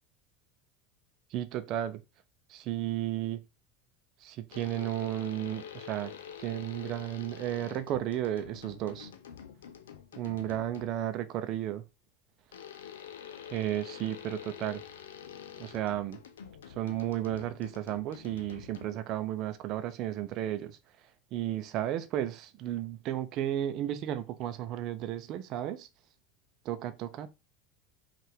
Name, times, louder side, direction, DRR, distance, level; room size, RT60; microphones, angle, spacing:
voice 1, 1.3-2.0 2.5-3.4 4.2-6.1 6.4-9.1 10.2-11.8 13.5-14.8 15.6-16.2 16.8-20.8 21.3-25.9 26.6-27.3, right 12 dB, 45° right, 0.6 m, -33 dB
sound 1, 4.5-11.1 12.5-19.2, left 8 dB, 70° left, 0.5 m, -47 dB
5.3 x 2.5 x 3.5 m
figure-of-eight pair, 75°, 0 cm